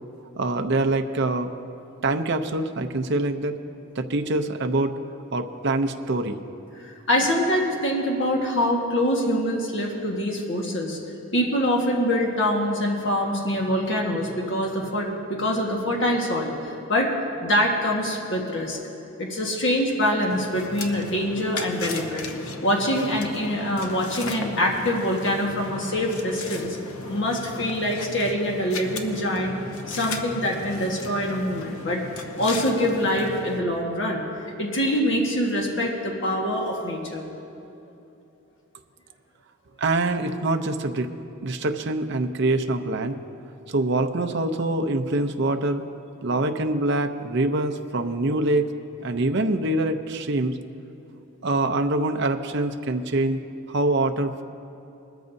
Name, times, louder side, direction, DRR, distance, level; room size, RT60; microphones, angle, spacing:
voice 1, 0.4-1.5 2.0-3.5 4.0-4.9 5.3-6.4 39.8-41.1 41.4-43.2 43.7-45.8 46.2-48.7 49.0-50.6 51.4-53.4 53.7-54.4, right 2 dB, 55° right, 5 dB, 0.6 m, -24 dB
voice 2, 6.7-11.0 11.3-17.1 17.4-18.8 19.2-22.2 22.6-26.8 27.0-29.5 29.9-32.1 32.4-34.2 34.6-37.2, equal, 60° left, -1 dB, 1.5 m, -24 dB
sound 1, 20.3-33.6, left 3 dB, 80° left, 1.0 m, -36 dB
21.0 x 14.0 x 2.7 m, 2.8 s
head